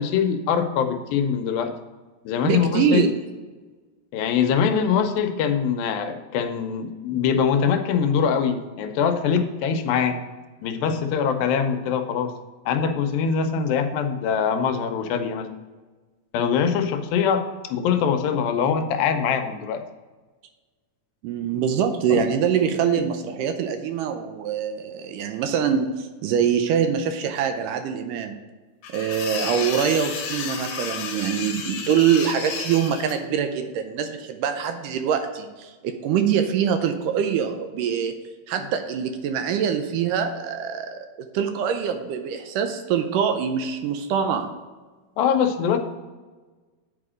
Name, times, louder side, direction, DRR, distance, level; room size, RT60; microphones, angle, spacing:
voice 1, 0.0-1.7 2.3-3.1 4.1-10.2 10.6-12.3 12.7-15.5 16.3-19.8 22.1-22.2 22.9-23.0 45.2-45.8, left 7 dB, 90° left, 7 dB, 2.5 m, -23 dB
voice 2, 2.4-3.1 21.2-28.3 28.9-38.1 38.5-44.5, right 8 dB, 75° right, 7 dB, 2.1 m, -24 dB
sound 1, 28.8-33.1, left 6 dB, 70° left, 2.4 m, -32 dB
9.2 x 5.0 x 5.0 m, 1.3 s
omnidirectional pair, 4.0 m